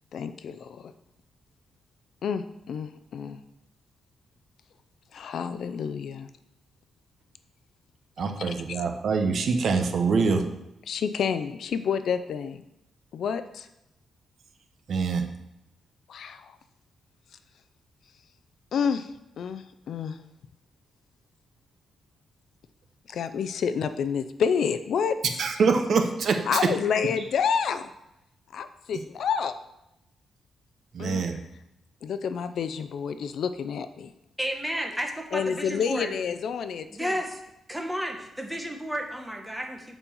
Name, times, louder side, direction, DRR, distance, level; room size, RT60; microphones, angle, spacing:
voice 1, 0.1-0.9 2.2-3.4 5.1-6.3 8.7-8.8 10.9-12.6 13.1-13.7 16.1-16.5 18.7-19.1 19.4-20.2 23.1-25.4 26.5-27.9 28.5-29.5 31.0-31.2 32.0-34.1 35.3-37.1, left 7 dB, 60° left, 11 dB, 0.5 m, -29 dB
voice 2, 8.2-10.4 14.9-15.2 25.4-26.7 30.9-31.4, right 4 dB, 50° right, 6 dB, 0.9 m, -24 dB
voice 3, 34.4-36.1 36.9-37.4 37.7-40.0, equal, 5° right, 2 dB, 1.1 m, -32 dB
7.2 x 5.4 x 7.1 m, 0.87 s
wide cardioid pair, 175°, 0 cm